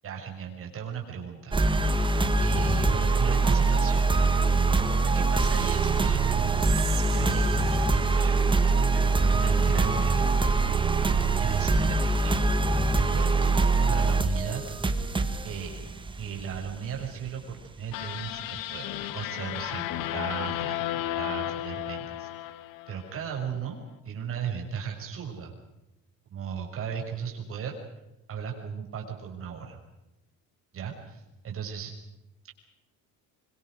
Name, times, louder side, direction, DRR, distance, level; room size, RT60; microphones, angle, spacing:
voice 1, 0.0-1.6 2.4-4.3 5.1-8.4 8.9-10.6 11.4-12.5 13.0-14.6 15.4-15.7 16.2-22.3 22.9-23.8 24.0-25.5 26.3-27.7 28.3-29.8 30.7-31.9, right 7 dB, 40° right, 1 dB, 6.5 m, -36 dB
sound 1, 1.5-17.3, right 3 dB, 15° right, 1.7 m, -24 dB
Whispering, 6.5-9.8, right 14 dB, 85° right, 3.0 m, -42 dB
sound 2, 17.9-23.2, left 14 dB, 90° left, 1.5 m, -33 dB
25.0 x 24.5 x 6.5 m, 0.95 s
cardioid pair, 170°, 33 cm